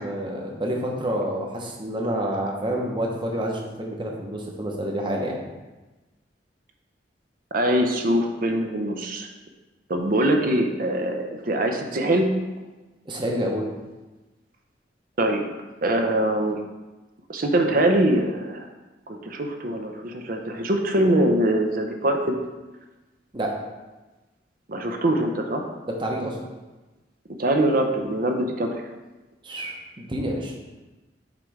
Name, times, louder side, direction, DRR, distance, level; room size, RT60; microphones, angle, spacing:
voice 1, 0.0-5.4 13.1-13.7 23.3-23.5 25.8-26.4 29.4-30.5, right 1 dB, 25° right, 0 dB, 1.0 m, -28 dB
voice 2, 7.5-9.3 9.9-12.3 15.2-15.4 15.8-16.6 17.3-18.6 19.1-22.4 24.7-25.7 27.4-28.7, right 1 dB, 50° right, 4 dB, 0.7 m, -23 dB
7.4 x 3.3 x 4.8 m, 1.1 s
head